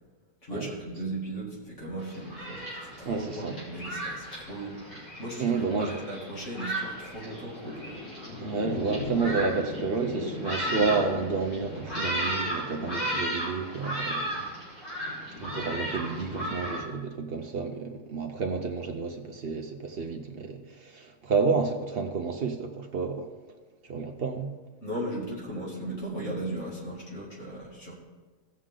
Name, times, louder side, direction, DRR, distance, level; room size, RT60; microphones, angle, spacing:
voice 1, 0.4-8.0 24.8-27.9, right 1 dB, 40° left, -5 dB, 2.8 m, -37 dB
Thunderstorm, 2.0-16.8, equal, 70° left, 4.5 m, -34 dB
voice 2, 3.0-3.6 5.4-6.0 8.4-14.3 15.4-23.3 23.8-24.5, right 4 dB, 55° right, 4 dB, 0.6 m, -30 dB
17.0 x 6.4 x 3.8 m, 1.4 s
omnidirectional pair, 1.9 m